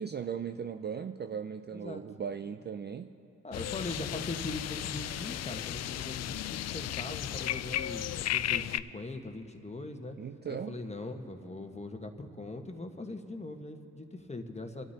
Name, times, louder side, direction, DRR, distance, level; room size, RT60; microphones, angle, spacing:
voice 1, 0.0-3.1 10.2-10.8, right 7 dB, 30° right, 8 dB, 0.5 m, -38 dB
voice 2, 3.4-10.2 10.4-14.9, left 2 dB, 20° left, 5 dB, 1.4 m, -41 dB
sound 1, 3.5-8.8, left 12 dB, 45° left, 0.4 m, -34 dB
26.5 x 12.5 x 2.9 m, 2.7 s
hypercardioid pair, 45°, 36 cm